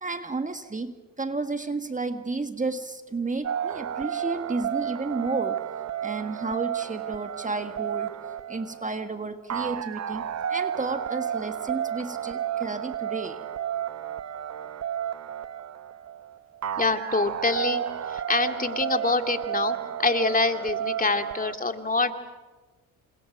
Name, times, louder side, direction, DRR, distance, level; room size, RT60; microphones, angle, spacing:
voice 1, 0.0-5.6 6.0-8.1 8.5-10.2 10.5-13.4, right 3 dB, 20° right, 7 dB, 1.7 m, -32 dB
sound 1, 3.4-21.5, right 9 dB, 45° right, 1.0 m, -32 dB
voice 2, 16.8-22.1, left 3 dB, 25° left, 6 dB, 2.6 m, -26 dB
28.5 x 26.5 x 6.1 m, 1.3 s
supercardioid pair, 70°, 36 cm